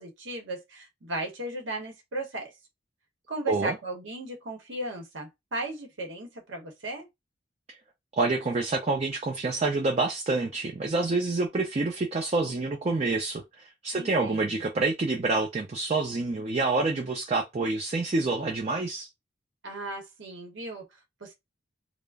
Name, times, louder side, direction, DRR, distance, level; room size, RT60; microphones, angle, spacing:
voice 1, 0.0-2.5 3.3-7.1 13.9-14.7 19.6-21.3, right 2 dB, 75° right, 0.8 m, -36 dB
voice 2, 8.2-19.1, right 3 dB, 35° right, 0.4 m, -27 dB
2.3 x 2.0 x 3.3 m
head